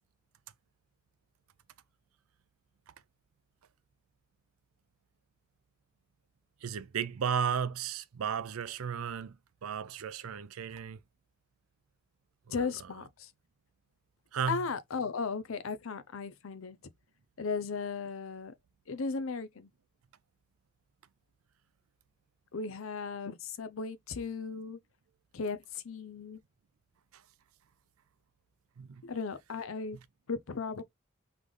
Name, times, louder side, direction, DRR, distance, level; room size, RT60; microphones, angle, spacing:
voice 1, 6.6-9.4 9.6-11.0 12.5-12.7 14.3-14.6 28.8-29.0, right 7 dB, 90° right, 0.5 m, -34 dB
voice 2, 12.5-13.3 14.5-16.8 17.4-18.5 18.9-19.7 22.5-24.8 25.3-26.4 29.0-30.0 30.3-30.8, left 5 dB, 75° left, 0.6 m, -36 dB
3.8 x 3.5 x 3.1 m
head